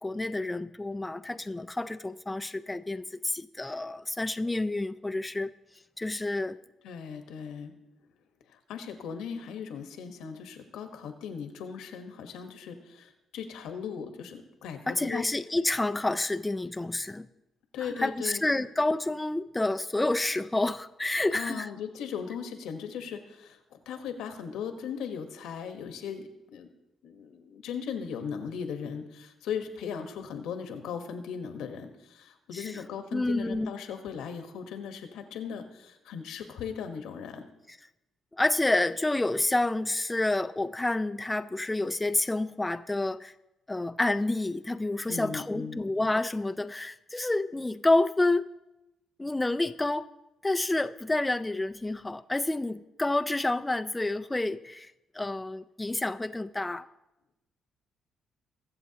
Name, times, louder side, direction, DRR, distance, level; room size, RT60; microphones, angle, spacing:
voice 1, 0.0-5.5 6.0-6.6 14.9-17.3 17.8-21.7 32.5-32.8 33.1-33.7 38.3-43.3 43.7-48.5 49.2-50.1 50.4-56.9, left 2 dB, 15° left, 10 dB, 0.4 m, -29 dB
voice 2, 6.8-7.7 8.5-15.3 17.7-18.4 21.3-26.7 27.0-37.5 45.1-45.8, left 7 dB, 90° left, 7 dB, 1.2 m, -38 dB
22.0 x 7.4 x 2.9 m, 0.95 s
cardioid pair, 90°, 0 cm